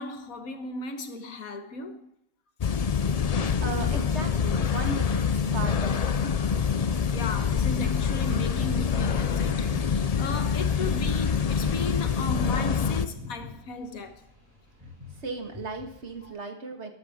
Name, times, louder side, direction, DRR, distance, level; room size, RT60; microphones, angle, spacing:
voice 1, 0.0-2.1 7.1-14.2 16.2-16.3, left 3 dB, 80° left, 1.7 m, -36 dB
sound 1, 2.6-13.1, left 6 dB, 60° left, 0.4 m, -26 dB
voice 2, 3.6-6.4 15.2-16.9, right 3 dB, 55° right, 1.9 m, -36 dB
sound 2, 4.3-16.3, left 2 dB, 10° right, 5.4 m, -45 dB
13.5 x 11.0 x 3.6 m
omnidirectional pair, 1.4 m